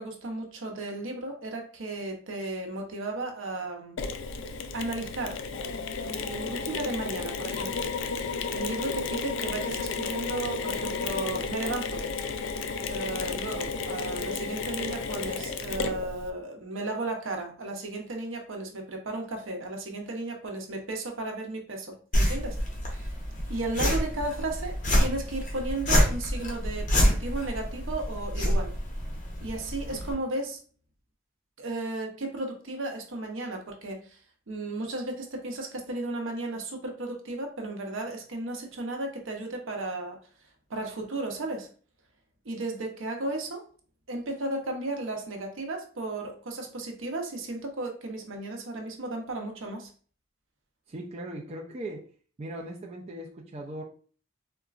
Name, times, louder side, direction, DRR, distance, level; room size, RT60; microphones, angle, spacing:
voice 1, 0.0-4.0 4.7-5.4 6.0-7.8 8.5-12.0 12.9-22.6 22.9-23.1 23.5-28.7 29.4-30.6 31.6-34.2 34.5-40.2 40.7-41.7 42.4-43.6 44.1-49.9, right 2 dB, 80° right, 3 dB, 0.7 m, -34 dB
Mechanisms, 4.0-16.3, left 4 dB, 65° left, 0.3 m, -33 dB
sound 1, 22.1-30.1, equal, 40° left, 0.8 m, -27 dB
voice 2, 50.9-52.1 52.4-53.8, right 1 dB, 35° right, -1 dB, 0.4 m, -39 dB
3.8 x 2.2 x 2.4 m, 0.41 s
head